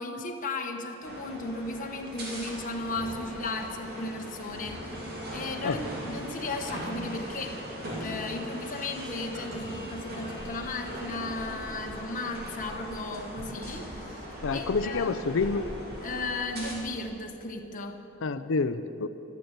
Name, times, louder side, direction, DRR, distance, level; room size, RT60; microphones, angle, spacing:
voice 1, 0.0-4.9 5.3-15.2 16.0-18.0, left 2 dB, 40° left, 2 dB, 1.1 m, -35 dB
sound 1, 1.0-16.7, equal, 50° right, 3.2 m, -39 dB
sound 2, 10.4-10.9 11.4-16.0, equal, 15° right, 3.3 m, -45 dB
voice 2, 14.4-15.7 18.2-19.1, left 4 dB, 65° left, 13 dB, 0.5 m, -28 dB
13.0 x 12.0 x 8.1 m, 3.0 s
head